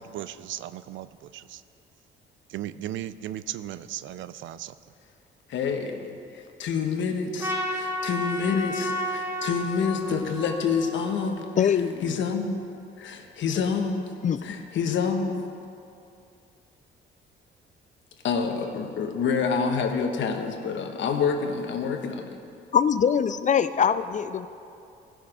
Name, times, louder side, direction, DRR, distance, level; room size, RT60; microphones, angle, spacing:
voice 1, 0.0-1.6 2.5-4.7, right 12 dB, 75° right, 15 dB, 0.4 m, -36 dB
voice 2, 5.5-11.7 12.0-12.6 13.0-14.0 14.4-15.5 18.2-22.4, left 5 dB, 70° left, 4 dB, 1.1 m, -27 dB
Trumpet, 7.4-11.8, equal, 10° right, 1.5 m, -32 dB
voice 3, 11.6-12.0 14.2-14.5 22.7-24.5, left 7 dB, 40° left, 12 dB, 0.4 m, -23 dB
16.0 x 6.3 x 5.0 m, 2.6 s
cardioid pair, 90°, 20 cm